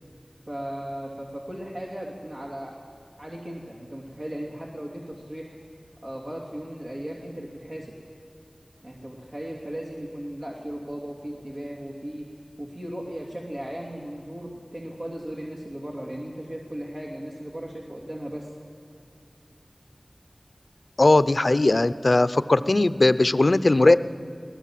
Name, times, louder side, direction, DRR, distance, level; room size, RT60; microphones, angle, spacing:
voice 1, 0.5-2.7 3.2-5.6 6.0-7.9 8.8-12.3 12.6-18.5, right 1 dB, 65° right, -4 dB, 3.0 m, -36 dB
voice 2, 21.0-24.0, left 2 dB, 65° left, 15 dB, 0.6 m, -19 dB
22.0 x 18.5 x 7.6 m, 2.5 s
wide cardioid pair, 45°, 0 cm